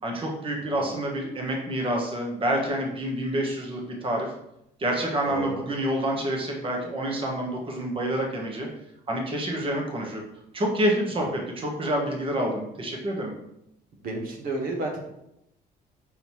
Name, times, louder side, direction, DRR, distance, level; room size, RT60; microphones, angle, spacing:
voice 1, 0.0-4.3 4.8-8.7 9.1-10.2 10.5-13.3, right 1 dB, 30° right, 0 dB, 1.4 m, -28 dB
voice 2, 5.2-5.6 13.9-15.0, right 2 dB, 60° right, 0 dB, 1.3 m, -32 dB
5.8 x 3.8 x 4.6 m, 0.82 s
cardioid pair, 110°, 17 cm